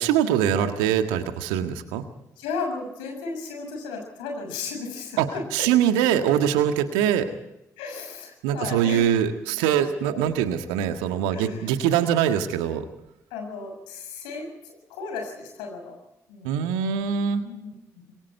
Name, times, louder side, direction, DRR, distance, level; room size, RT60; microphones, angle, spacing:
voice 1, 0.0-2.0 5.2-5.3 5.5-7.3 8.4-12.8 16.4-17.4, right 9 dB, 70° right, 8 dB, 1.7 m, -23 dB
voice 2, 2.4-5.7 7.8-9.0 10.4-10.5 11.3-11.8 13.3-16.0 16.3-16.5 17.4-18.1, left 4 dB, 70° left, 3 dB, 6.7 m, -35 dB
27.5 x 22.5 x 4.6 m, 0.84 s
figure-of-eight pair, 40°, 8 cm